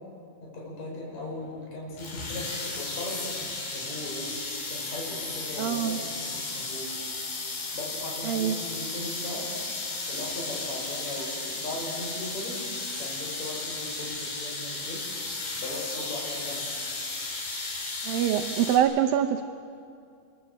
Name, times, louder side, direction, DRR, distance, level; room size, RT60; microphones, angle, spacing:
voice 1, 0.4-4.3 4.7-7.0 7.7-9.5 10.1-12.7 13.0-15.1 15.6-16.7, left 2 dB, 50° left, -2 dB, 6.5 m, -38 dB
sound 1, 2.0-18.8, left 3 dB, 85° left, 6.0 m, -34 dB
voice 2, 5.6-6.0 8.2-8.6 18.1-19.4, right 10 dB, 80° right, 4 dB, 2.5 m, -24 dB
28.0 x 22.5 x 7.9 m, 2.4 s
omnidirectional pair, 4.2 m